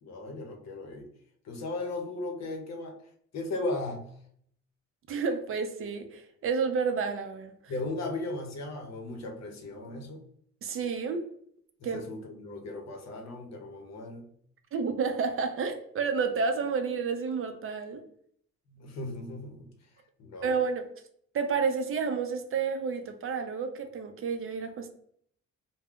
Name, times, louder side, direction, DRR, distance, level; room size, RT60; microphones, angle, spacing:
voice 1, 0.0-1.1 1.4-2.9 3.3-4.2 7.7-10.2 11.8-14.3 18.7-19.7 20.2-20.6, left 2 dB, 60° left, 4 dB, 0.7 m, -37 dB
voice 2, 5.1-7.5 10.6-11.2 11.8-12.0 14.7-18.0 20.4-20.9 21.3-24.9, right 5 dB, 45° right, 7 dB, 0.4 m, -30 dB
2.2 x 2.0 x 3.5 m, 0.66 s
cardioid pair, 90°, 30 cm